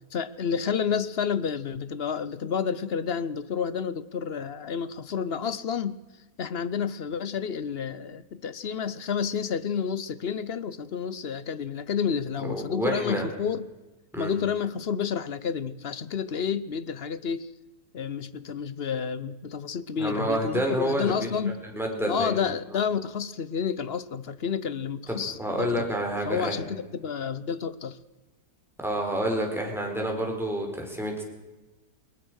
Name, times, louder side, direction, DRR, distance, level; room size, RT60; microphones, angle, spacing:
voice 1, 0.1-6.0 6.4-13.7 14.2-17.5 17.9-21.6 22.1-25.9 26.3-28.0, left 7 dB, 50° left, 15 dB, 0.8 m, -30 dB
voice 2, 12.4-13.2 14.1-14.3 20.0-21.3 21.6-22.3 25.1-26.6 28.8-31.2, right 1 dB, ahead, 0 dB, 4.9 m, -29 dB
21.0 x 20.0 x 6.4 m, 1.1 s
omnidirectional pair, 1.8 m